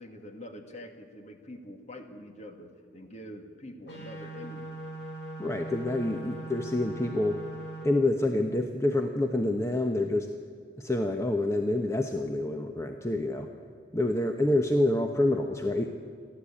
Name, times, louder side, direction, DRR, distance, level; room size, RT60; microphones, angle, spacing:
voice 1, 0.0-4.8, equal, 40° left, 4 dB, 2.2 m, -45 dB
sound 1, 3.9-7.8, right 1 dB, 70° left, 7.6 m, -40 dB
voice 2, 5.4-7.4 7.8-10.3 10.8-13.5 13.9-15.9, left 1 dB, 15° left, 4 dB, 1.0 m, -27 dB
28.5 x 12.0 x 8.6 m, 2.2 s
head